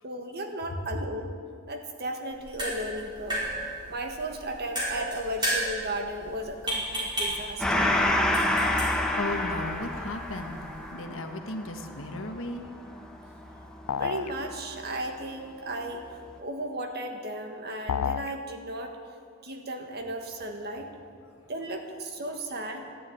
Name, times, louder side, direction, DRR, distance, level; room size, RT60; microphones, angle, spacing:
voice 1, 0.0-1.3 1.7-3.4 3.9-8.0 14.0-16.0 16.4-19.0 19.4-20.9 21.5-22.9, right 1 dB, 50° right, 4 dB, 1.7 m, -35 dB
sound 1, 2.3-10.9, right 1 dB, 20° right, 4.8 m, -34 dB
Gong, 7.6-14.6, left 1 dB, 5° left, 1.1 m, -28 dB
voice 2, 9.2-12.6, left 2 dB, 70° left, 5 dB, 1.4 m, -35 dB
sound 2, 13.9-14.4 17.9-18.4, left 8 dB, 90° left, 0.4 m, -29 dB
14.0 x 11.0 x 9.3 m, 2.2 s
head